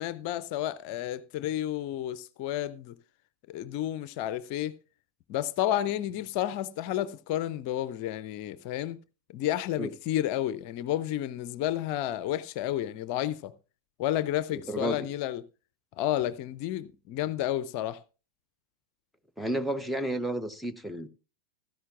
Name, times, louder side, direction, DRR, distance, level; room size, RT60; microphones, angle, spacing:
voice 1, 0.0-2.9 3.5-4.8 5.3-9.0 9.3-13.5 14.0-15.4 16.0-18.0, left 12 dB, 45° left, 0.5 m, -31 dB
voice 2, 14.5-15.1 19.4-21.1, right 1 dB, ahead, 0.8 m, -32 dB
15.5 x 13.0 x 2.4 m
figure-of-eight pair, 90°, 0 cm